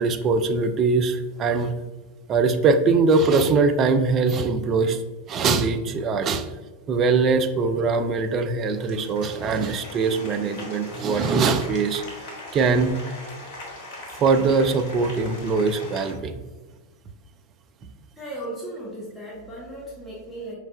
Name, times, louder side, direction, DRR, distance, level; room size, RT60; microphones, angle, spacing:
voice 1, 0.0-1.7 2.3-5.0 5.3-6.5 6.9-12.0 12.5-13.0 14.2-16.4, right 4 dB, 30° right, 8 dB, 0.3 m, -22 dB
Applause, 7.0-16.1, left 2 dB, 50° left, 1.1 m, -41 dB
voice 2, 17.9-20.5, right 1 dB, 10° left, -6 dB, 1.0 m, -36 dB
5.3 x 3.2 x 2.3 m, 1.3 s
figure-of-eight pair, 90°, 0 cm